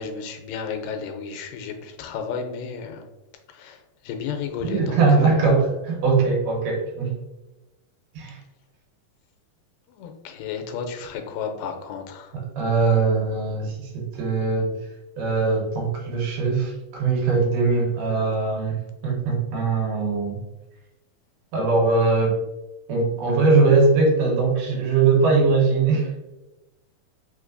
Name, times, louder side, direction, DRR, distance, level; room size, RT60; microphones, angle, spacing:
voice 1, 0.0-3.0 3.5-3.8 4.1-5.4 9.9-12.3, left 6 dB, 85° left, 5 dB, 2.3 m, -33 dB
voice 2, 4.6-7.1 8.1-8.4 12.6-14.8 15.2-20.4 21.5-22.3 22.9-26.1, right 4 dB, 80° right, -1 dB, 2.6 m, -21 dB
5.1 x 3.3 x 2.5 m, 1.0 s
omnidirectional pair, 3.8 m